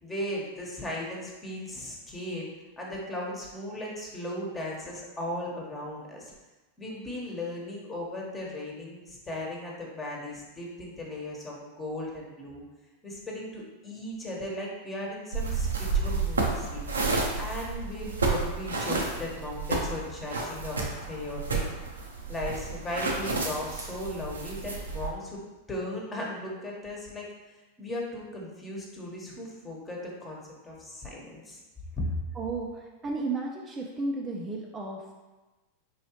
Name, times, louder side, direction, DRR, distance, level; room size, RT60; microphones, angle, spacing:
voice 1, 0.0-2.5 2.8-6.3 6.8-12.6 13.0-16.8 17.4-21.6 22.3-25.4 25.7-31.6 32.0-32.1, left 1 dB, 20° left, -3 dB, 1.2 m, -37 dB
sound 1, 15.3-25.1, right 3 dB, 85° right, 0.6 m, -31 dB
voice 2, 32.4-35.1, right 3 dB, 25° right, -1 dB, 0.5 m, -33 dB
4.6 x 3.0 x 3.0 m, 1.2 s
hypercardioid pair, 95°, 0 cm